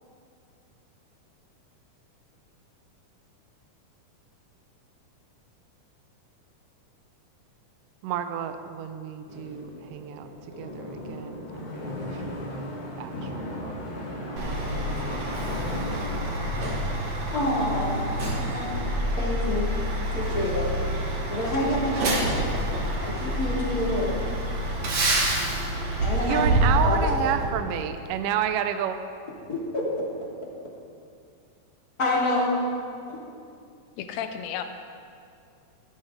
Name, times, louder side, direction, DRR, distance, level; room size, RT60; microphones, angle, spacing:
voice 1, 8.0-10.3 10.6-12.6 13.0-13.8 14.2-15.3 15.6-16.8 26.2-29.0, right 9 dB, 85° right, 9 dB, 1.3 m, -31 dB
sound 1, 9.3-18.1, left 1 dB, 45° left, 2.3 m, -37 dB
Truck, 14.4-27.5, right 1 dB, 55° right, 2.9 m, -27 dB
voice 2, 17.3-18.7 19.2-19.7 20.1-20.7 21.3-22.4 23.0-24.1 26.0-26.5 26.8-27.0 29.5-29.9 32.0-32.5 33.1-33.2, left 1 dB, 30° left, -4 dB, 2.7 m, -27 dB
voice 3, 34.0-34.6, left 9 dB, 70° left, 7 dB, 1.8 m, -32 dB
16.5 x 14.0 x 3.7 m, 2.4 s
omnidirectional pair, 3.7 m